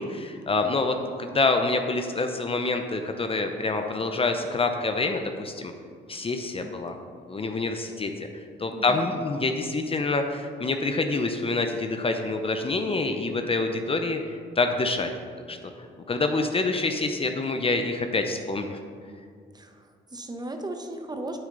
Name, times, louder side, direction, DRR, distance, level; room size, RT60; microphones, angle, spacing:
voice 1, 0.0-5.7 6.1-6.9 7.3-8.1 8.6-14.2 14.6-15.1 15.5-18.8, left 3 dB, 30° left, 5 dB, 0.7 m, -26 dB
voice 2, 8.7-9.2 19.5-21.4, right 2 dB, 20° right, 5 dB, 0.9 m, -37 dB
9.0 x 8.6 x 3.9 m, 2.2 s
cardioid pair, 90°, 20 cm